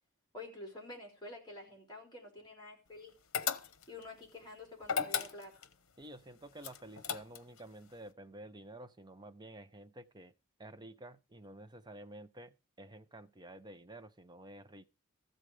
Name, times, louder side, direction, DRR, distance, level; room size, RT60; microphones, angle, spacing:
voice 1, 0.3-3.1 3.9-5.5, left 2 dB, 20° left, 4.5 m, -48 dB
sound 1, 3.3-4.0 4.8-5.7 6.6-7.6, left 7 dB, 80° left, 0.9 m, -35 dB
voice 2, 6.0-10.3 10.6-14.9, right 1 dB, 20° right, 0.7 m, -51 dB
14.0 x 7.8 x 4.9 m
head